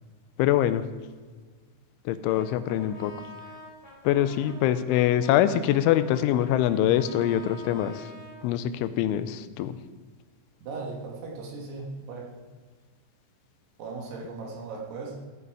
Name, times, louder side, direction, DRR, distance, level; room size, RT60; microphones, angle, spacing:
voice 1, 0.4-0.9 2.1-3.1 4.1-8.1 8.4-9.8, left 11 dB, 85° left, 13 dB, 3.0 m, -24 dB
Brass instrument, 2.2-8.4, left 1 dB, 25° left, 3.5 m, -46 dB
voice 2, 10.6-12.4 13.8-15.2, right 3 dB, 65° right, -1 dB, 3.3 m, -37 dB
15.5 x 8.2 x 4.7 m, 1.4 s
omnidirectional pair, 5.4 m